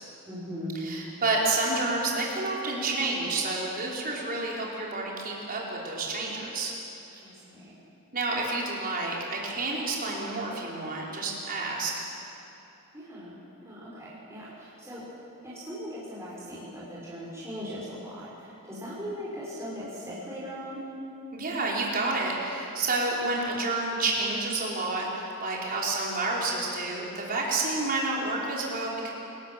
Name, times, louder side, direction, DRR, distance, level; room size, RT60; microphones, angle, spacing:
voice 1, 0.2-0.9 7.2-7.8 12.9-15.0 15.4-20.8, equal, 15° right, -9 dB, 5.6 m, -39 dB
voice 2, 0.8-6.7 8.1-11.9 21.3-29.1, right 2 dB, 40° right, -3 dB, 5.1 m, -29 dB
27.5 x 19.0 x 7.7 m, 3.0 s
head